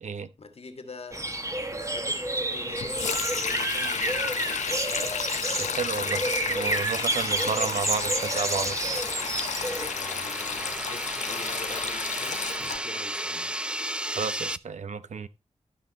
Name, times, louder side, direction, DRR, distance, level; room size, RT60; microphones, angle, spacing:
voice 1, 0.4-5.2 9.7-13.5, left 3 dB, 55° left, 1.7 m, -44 dB
sound 1, 1.1-9.9, right 1 dB, 25° right, 1.2 m, -30 dB
Sink (filling or washing), 2.7-12.8, left 6 dB, 85° left, 0.7 m, -32 dB
sound 2, 4.1-14.6, right 1 dB, 10° right, 0.4 m, -36 dB
voice 2, 5.6-8.8 14.2-15.3, right 6 dB, 75° right, 0.7 m, -32 dB
12.0 x 5.5 x 4.0 m
cardioid pair, 60°, 12 cm